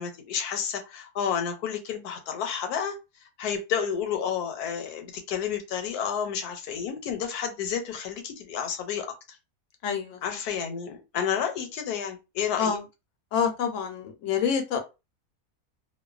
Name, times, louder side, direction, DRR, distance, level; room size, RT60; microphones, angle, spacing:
voice 1, 0.0-3.0 3.4-9.4 10.2-12.8, left 7 dB, 80° left, 1.1 m, -31 dB
voice 2, 9.8-10.2 11.2-11.3 12.6-12.9 13.3-14.8, left 7 dB, 65° left, 0.8 m, -27 dB
2.5 x 2.1 x 2.3 m
omnidirectional pair, 1.7 m